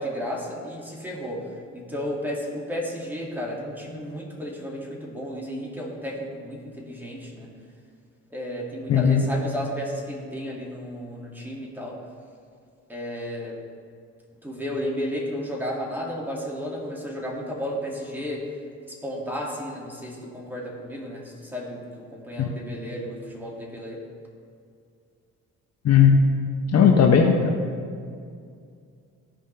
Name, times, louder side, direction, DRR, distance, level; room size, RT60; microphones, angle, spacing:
voice 1, 0.0-1.5 1.7-7.5 8.3-12.0 12.9-13.6 14.4-18.5 18.9-24.0, equal, 5° right, -3 dB, 2.3 m, -33 dB
voice 2, 8.9-9.2 22.4-22.5 25.8-26.3 26.7-27.6, left 6 dB, 55° left, 3 dB, 0.8 m, -17 dB
15.5 x 5.2 x 3.3 m, 2.3 s
cardioid pair, 90°, 30 cm